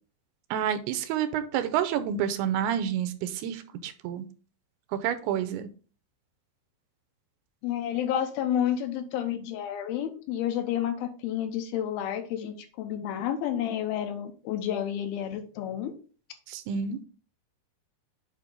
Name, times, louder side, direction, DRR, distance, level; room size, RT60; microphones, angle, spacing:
voice 1, 0.5-4.3 4.9-5.7 16.5-17.0, right 9 dB, 90° right, 11 dB, 2.6 m, -29 dB
voice 2, 7.6-15.9, left 10 dB, 75° left, 7 dB, 2.5 m, -30 dB
8.3 x 2.9 x 5.2 m, 0.37 s
omnidirectional pair, 4.6 m